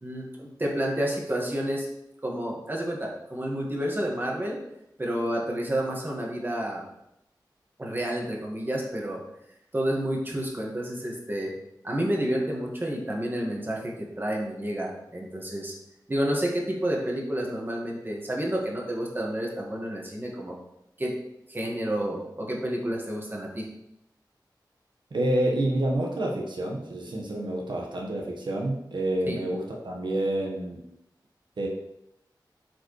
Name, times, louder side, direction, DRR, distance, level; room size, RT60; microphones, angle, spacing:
voice 1, 0.0-1.9 2.2-4.6 5.0-6.8 7.8-9.2 9.7-11.5 11.8-15.7 16.1-20.5 21.0-21.1 21.5-23.7 29.3-29.4, right 1 dB, 25° right, -2 dB, 1.8 m, -30 dB
voice 2, 25.1-30.8 31.6-31.7, right 1 dB, 85° right, -2 dB, 1.4 m, -28 dB
8.6 x 5.0 x 3.3 m, 0.82 s
wide cardioid pair, 85°, 8 cm